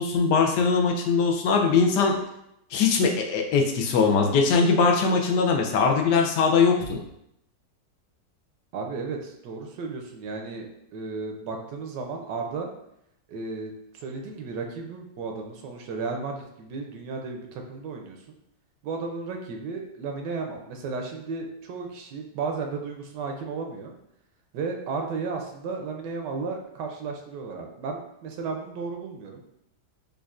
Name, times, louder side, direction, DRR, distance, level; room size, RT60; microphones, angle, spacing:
voice 1, 0.0-2.2 2.7-7.0, left 5 dB, 80° left, 2 dB, 1.2 m, -21 dB
voice 2, 8.7-10.7 10.9-12.7 13.3-18.2 18.8-23.9 24.5-29.4, right 4 dB, 80° right, 2 dB, 1.2 m, -34 dB
5.2 x 2.4 x 2.4 m, 0.78 s
omnidirectional pair, 1.8 m